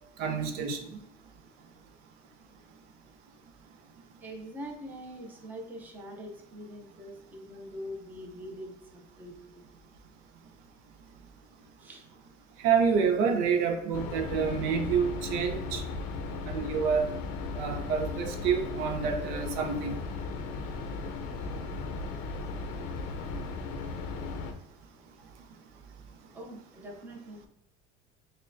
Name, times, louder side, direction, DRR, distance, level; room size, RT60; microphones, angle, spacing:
voice 1, 0.2-0.8 12.6-15.8 16.4-17.1 17.5-19.9, right 6 dB, 75° right, 5 dB, 0.6 m, -28 dB
voice 2, 4.2-9.6 11.8-12.0 26.3-27.5, equal, 10° right, 0 dB, 0.6 m, -43 dB
sound 1, 13.9-24.5, left 3 dB, 65° left, 0.6 m, -36 dB
6.2 x 2.2 x 2.5 m, 0.88 s
cardioid pair, 165°, 15 cm